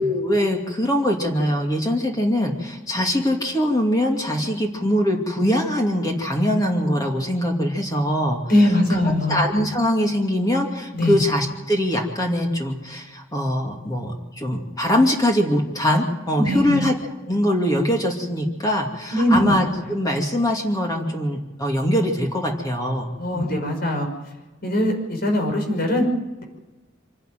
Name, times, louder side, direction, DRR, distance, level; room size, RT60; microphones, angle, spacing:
voice 1, 0.0-8.4 8.9-9.0 9.3-16.9 17.3-23.5, equal, 20° left, 1 dB, 2.6 m, -22 dB
voice 2, 8.5-9.4 10.9-11.2 16.4-16.8 19.1-19.5 23.2-24.1 24.6-26.1 26.4-26.5, left 1 dB, 55° left, 3 dB, 5.7 m, -21 dB
26.0 x 11.5 x 9.3 m, 1.1 s
head